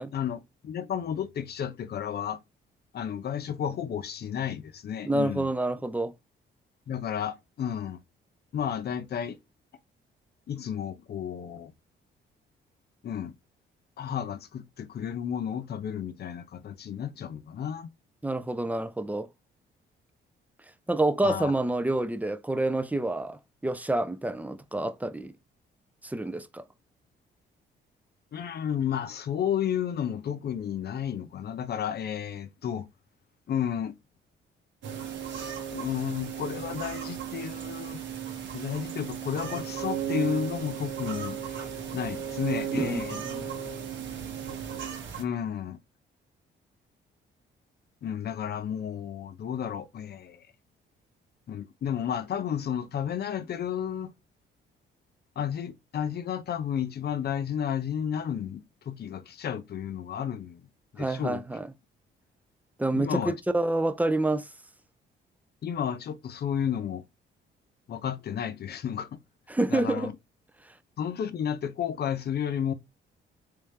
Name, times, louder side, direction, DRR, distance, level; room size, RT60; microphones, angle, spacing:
voice 1, 0.0-2.4 2.9-5.5 6.9-8.0 8.5-9.4 10.5-11.7 13.0-13.3 14.0-17.9 21.2-21.5 28.3-32.9 33.5-34.0 35.7-38.0 38.5-41.6 41.9-43.2 45.2-45.8 48.0-50.4 51.5-54.1 55.4-60.6 60.9-61.4 62.9-63.3 65.6-67.0 67.9-69.1 69.7-70.1 71.0-72.7, left 8 dB, 55° left, 0.7 m, -32 dB
voice 2, 5.0-6.1 18.2-19.3 20.9-25.3 26.0-26.6 42.7-43.5 61.0-61.7 62.8-64.5 69.5-70.1, right 2 dB, 10° right, 0.5 m, -28 dB
sound 1, 34.8-45.2, right 8 dB, 70° right, 1.2 m, -35 dB
3.5 x 3.3 x 3.2 m
cardioid pair, 90°, 20 cm